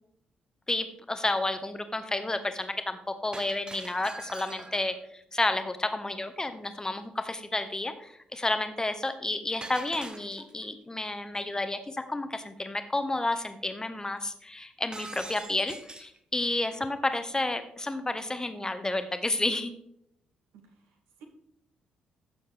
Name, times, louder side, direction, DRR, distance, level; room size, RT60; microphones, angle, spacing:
voice 1, 0.7-19.7, left 2 dB, 15° left, 9 dB, 1.0 m, -31 dB
Shatter, 3.3-5.0 9.6-10.7 14.9-16.2, right 2 dB, 20° right, 1.1 m, -43 dB
voice 2, 20.5-21.2, right 6 dB, 65° right, 2 dB, 1.7 m, -55 dB
14.5 x 7.1 x 3.4 m, 0.73 s
figure-of-eight pair, 40°, 4 cm